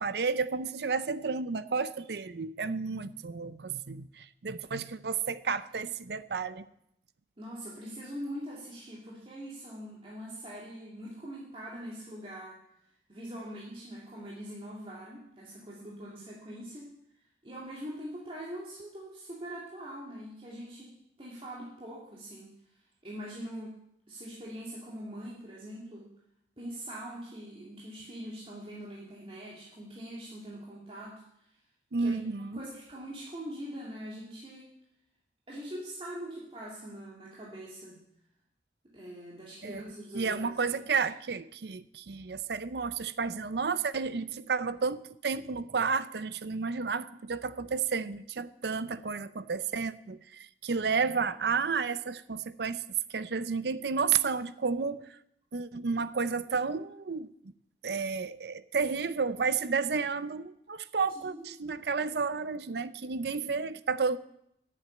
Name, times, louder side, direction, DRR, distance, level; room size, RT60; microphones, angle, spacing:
voice 1, 0.0-6.6 31.9-32.7 39.6-39.8 40.1-52.8 53.1-55.2 55.5-57.3 57.8-64.2, right 5 dB, 60° right, 15 dB, 0.6 m, -31 dB
voice 2, 7.4-12.6 13.1-16.9 17.4-20.9 21.2-22.5 23.0-23.8 24.1-26.1 26.6-31.5 32.0-32.2 32.5-34.7 35.5-38.0 38.9-40.5 61.2-61.4, equal, 30° right, -6 dB, 2.4 m, -43 dB
10.5 x 7.6 x 8.9 m, 0.76 s
head